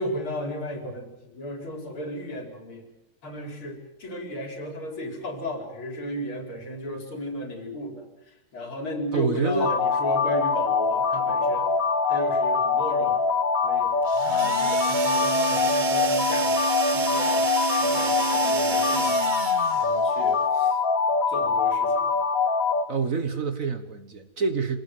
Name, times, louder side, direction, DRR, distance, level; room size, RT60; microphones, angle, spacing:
voice 1, 0.0-2.9 3.2-8.1 8.5-11.7 12.1-13.2 13.6-13.9 14.2-16.7 16.9-19.2 19.7-20.8 21.3-22.1, left 1 dB, 85° left, 4 dB, 5.2 m, -35 dB
voice 2, 9.1-9.7 22.9-24.8, right 4 dB, 45° right, 10 dB, 1.6 m, -27 dB
sound 1, 9.6-22.8, left 4 dB, 45° left, 1.5 m, -23 dB
sound 2, 14.1-19.9, right 7 dB, 75° right, 0.4 m, -30 dB
26.5 x 17.5 x 7.9 m, 0.91 s
omnidirectional pair, 2.2 m